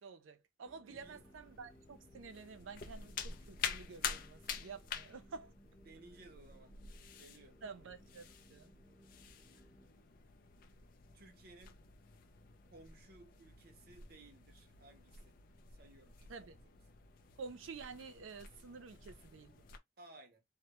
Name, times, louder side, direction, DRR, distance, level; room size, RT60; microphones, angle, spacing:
voice 1, 0.0-5.5 7.6-8.7 16.3-16.6 17.4-19.6, right 5 dB, 85° right, 0.5 m, -50 dB
sound 1, 0.6-9.9, right 1 dB, 5° left, 0.8 m, -65 dB
sound 2, 0.9-19.8, left 7 dB, 45° left, 0.4 m, -48 dB
voice 2, 0.9-1.2 5.8-6.8 7.2-7.6 11.1-11.8 12.7-15.3 15.7-16.6 20.0-20.4, right 2 dB, 50° right, 0.7 m, -59 dB
2.1 x 2.1 x 2.8 m
head